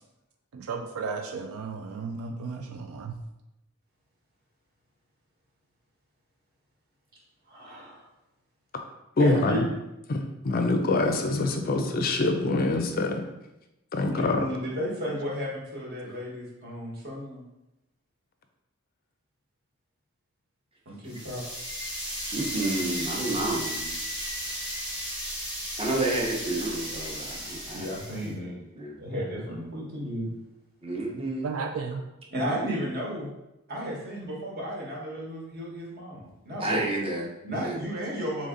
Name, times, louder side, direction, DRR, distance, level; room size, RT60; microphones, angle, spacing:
voice 1, 0.5-3.2 15.1-15.2 31.4-32.0, right 4 dB, 70° right, 5 dB, 0.4 m, -34 dB
voice 2, 7.5-8.0 9.2-9.6 11.6-11.9 12.3-12.4 14.1-17.4 20.8-21.4 27.7-28.6 29.0-30.3 32.3-33.3 33.7-36.8 37.4-38.5, equal, 45° right, -3 dB, 1.3 m, -33 dB
voice 3, 9.2-9.6 10.1-13.2 13.9-14.5, left 2 dB, 45° left, 5 dB, 0.4 m, -25 dB
sound 1, 21.1-28.3, equal, 5° right, 1.3 m, -34 dB
voice 4, 22.3-23.9 25.8-28.4 28.7-29.0 30.8-31.5 36.6-37.3 37.6-37.9, right 2 dB, 25° right, -2 dB, 0.8 m, -30 dB
3.9 x 3.3 x 3.7 m, 0.92 s
head